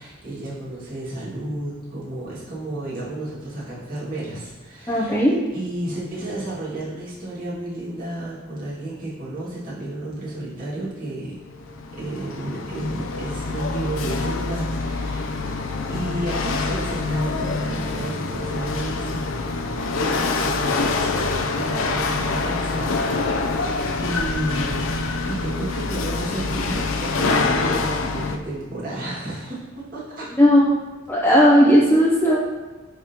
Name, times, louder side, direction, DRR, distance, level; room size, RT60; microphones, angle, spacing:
voice 1, 0.0-5.3 5.5-11.4 11.9-15.5 15.9-23.6 24.0-30.3, right 1 dB, 45° right, -9 dB, 2.0 m, -32 dB
voice 2, 4.9-5.4 30.4-30.8 31.1-32.4, equal, 10° left, -5 dB, 0.5 m, -16 dB
Chatter / Hiss / Rattle, 11.5-28.4, left 3 dB, 80° left, 0.5 m, -25 dB
9.9 x 3.6 x 2.9 m, 1.3 s
head